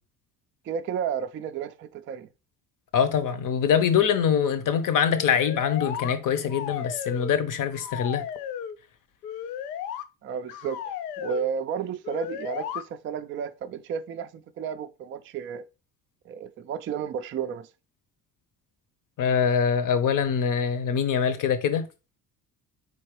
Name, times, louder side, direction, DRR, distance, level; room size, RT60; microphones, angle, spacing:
voice 1, 0.6-2.3 10.2-15.6 16.3-17.7, right 7 dB, 30° right, 0.4 m, -32 dB
voice 2, 2.9-8.2 19.2-21.9, left 7 dB, 45° left, 0.8 m, -24 dB
sound 1, 5.1-6.2 6.5-7.4 7.7-8.8 9.2-10.0 10.5-11.5 12.0-12.8, left 9 dB, 85° left, 0.5 m, -34 dB
4.3 x 3.8 x 3.1 m
hypercardioid pair, 55°, 46 cm